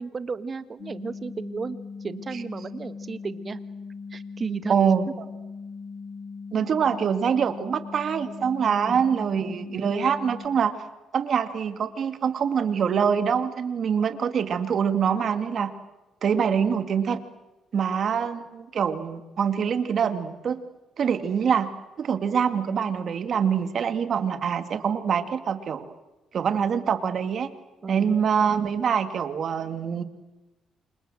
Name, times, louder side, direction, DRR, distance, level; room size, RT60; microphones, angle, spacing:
voice 1, 0.0-3.6 4.1-4.8 5.1-5.2 8.7-9.0 27.8-28.2, right 4 dB, 40° right, 12 dB, 1.6 m, -34 dB
sound 1, 0.8-10.5, left 4 dB, 55° left, 2.4 m, -39 dB
voice 2, 4.7-5.1 6.5-10.7 11.1-15.7 16.2-17.2 17.7-20.6 21.0-21.7 22.0-25.9 26.3-27.5 27.9-30.0, right 7 dB, 55° right, 10 dB, 2.2 m, -24 dB
28.5 x 27.0 x 7.7 m, 1.1 s
cardioid pair, 90°, 0 cm